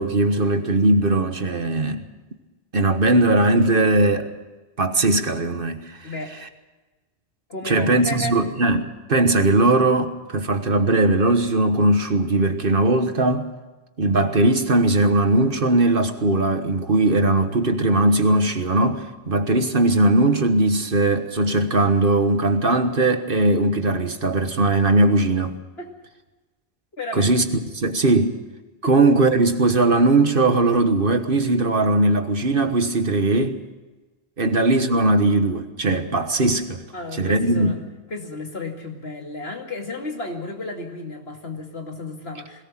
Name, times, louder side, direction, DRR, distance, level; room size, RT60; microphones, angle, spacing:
voice 1, 0.0-2.0 2.7-4.3 4.8-6.1 7.6-13.4 14.0-25.6 27.1-27.5 27.7-28.3 28.8-33.6 34.4-36.8 37.2-37.7, right 2 dB, 55° right, 1.5 m, -19 dB
voice 2, 6.0-6.4 7.5-8.4 25.8-25.9 27.0-27.4 34.4-34.5 36.9-37.8 38.1-42.6, left 2 dB, 65° left, 2.7 m, -32 dB
21.0 x 18.5 x 7.5 m
omnidirectional pair, 1.1 m